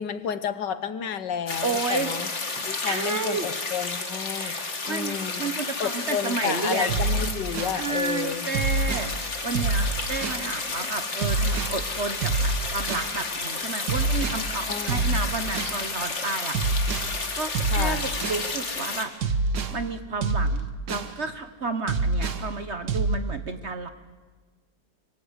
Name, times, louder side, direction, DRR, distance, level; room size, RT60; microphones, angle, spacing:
voice 1, 0.0-2.3 2.6-4.6 4.9-5.5 5.8-8.5 14.7-15.2 17.7-18.1, left 8 dB, 70° left, 12 dB, 1.7 m, -31 dB
sound 1, 1.5-19.0, left 3 dB, 40° left, 2.2 m, -32 dB
voice 2, 1.6-2.1 2.8-3.5 4.3-7.0 7.7-16.9 17.3-19.1 19.7-23.9, right 3 dB, 40° right, 9 dB, 1.2 m, -31 dB
sound 2, 6.9-7.8 8.5-9.1 9.5-10.5 11.2-11.8 12.2-13.1 13.9-14.5 14.9-15.8 16.5-17.1 17.5-18.5 19.2-19.8 20.2-21.1 21.9-22.5 22.9-23.2, right 3 dB, 65° right, 1.9 m, -26 dB
25.0 x 23.5 x 8.2 m, 1.4 s
omnidirectional pair, 2.0 m